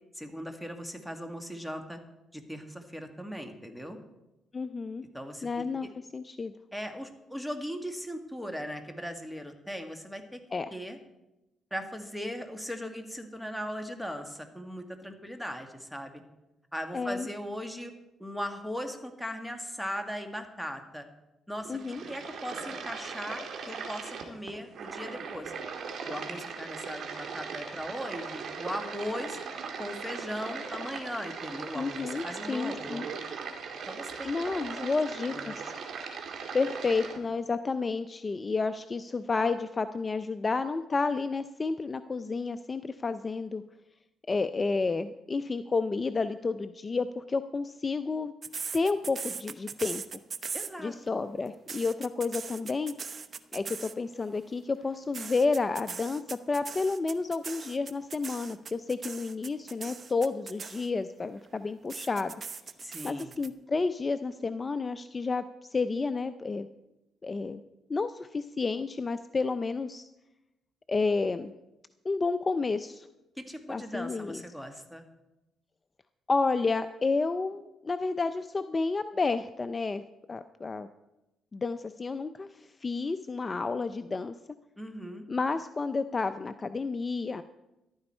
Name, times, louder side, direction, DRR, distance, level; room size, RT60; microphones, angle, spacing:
voice 1, 0.2-2.0 2.3-4.0 5.1-5.7 6.7-10.4 10.7-11.0 11.7-16.2 16.7-17.9 18.2-21.1 21.5-25.5 26.1-29.4 29.8-33.1 33.9-34.9 35.3-35.6 50.5-50.9 62.8-63.3 73.4-75.0 84.8-85.3, equal, ahead, 5 dB, 1.7 m, -38 dB
voice 2, 4.5-5.0 5.4-5.9 6.1-6.5 10.5-10.7 16.9-17.3 21.7-22.0 31.7-33.1 34.2-35.7 36.5-43.6 44.3-48.3 48.7-50.0 50.8-52.9 53.5-62.3 63.0-65.4 65.7-66.7 67.2-67.6 67.9-70.1 70.9-71.5 72.0-73.1 73.7-74.4 76.3-80.0 80.3-80.9 81.5-84.3 85.3-87.4, left 4 dB, 30° left, 10 dB, 0.5 m, -30 dB
sound 1, 21.6-37.2, right 5 dB, 65° right, 2.1 m, -39 dB
sound 2, 48.4-51.1 51.5-54.1 55.1-61.1 61.9-63.5, right 5 dB, 45° right, 0.7 m, -39 dB
14.0 x 12.0 x 4.4 m, 0.96 s
cardioid pair, 90°, 0 cm